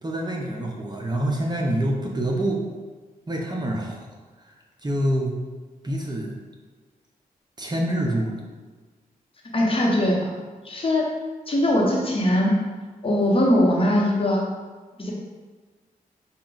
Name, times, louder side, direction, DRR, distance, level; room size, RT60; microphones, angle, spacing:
voice 1, 0.0-2.6 3.3-4.1 4.4-4.5 4.8-5.3 5.8-6.4 7.6-8.4, right 1 dB, 25° right, -1 dB, 0.7 m, -26 dB
voice 2, 9.5-10.3 10.6-11.1 11.5-12.5 13.0-14.4 15.0-15.1, left 1 dB, 35° left, -3 dB, 1.1 m, -21 dB
5.6 x 2.4 x 3.9 m, 1.3 s
cardioid pair, 70°, 15 cm